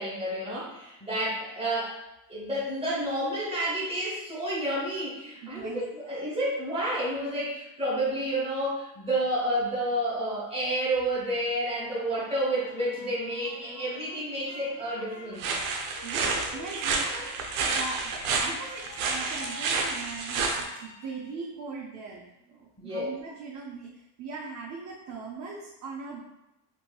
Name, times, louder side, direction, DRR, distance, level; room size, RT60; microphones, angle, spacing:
voice 1, 0.0-2.0 2.3-15.5 22.8-23.1, right 1 dB, 10° right, -6 dB, 1.2 m, -30 dB
voice 2, 5.4-5.8 16.0-18.1 18.4-26.2, right 4 dB, 35° right, -3 dB, 0.5 m, -40 dB
sound 1, 11.6-21.5 21.9-22.6, left 3 dB, 40° left, 0.7 m, -48 dB
sound 2, 15.4-20.6, right 4 dB, 75° right, 0.7 m, -29 dB
2.7 x 2.7 x 2.3 m, 0.95 s
supercardioid pair, 100°, 49 cm